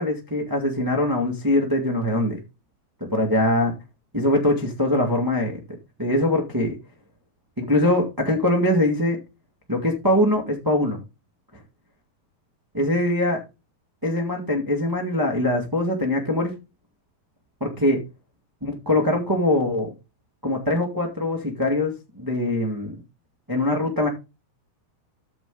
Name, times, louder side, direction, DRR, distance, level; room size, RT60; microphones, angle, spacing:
voice 1, 0.0-2.4 3.1-3.7 4.1-5.6 6.0-6.7 7.6-9.2 9.7-11.0 12.7-13.4 14.0-16.5 17.6-18.0 18.6-19.9 20.4-22.9 23.5-24.1, left 1 dB, 15° right, 1 dB, 0.6 m, -22 dB
13.5 x 5.0 x 3.9 m, 0.27 s
omnidirectional pair, 4.2 m